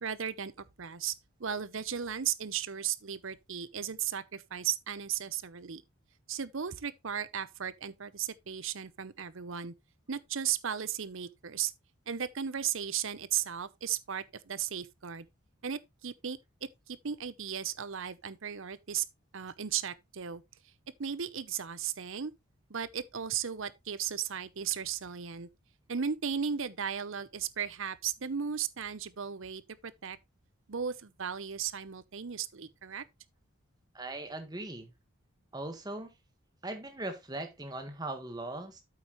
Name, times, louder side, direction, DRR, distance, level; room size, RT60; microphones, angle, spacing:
voice 1, 0.0-1.1 1.4-5.8 6.3-9.7 10.1-11.7 12.1-15.3 15.6-19.0 19.3-20.4 21.0-22.3 22.7-25.5 25.9-30.2 30.7-33.1, right 8 dB, 65° right, 0.7 m, -36 dB
voice 2, 33.9-34.9 35.5-36.1 36.6-38.8, right 2 dB, 20° right, 1.5 m, -39 dB
8.5 x 8.1 x 3.1 m
head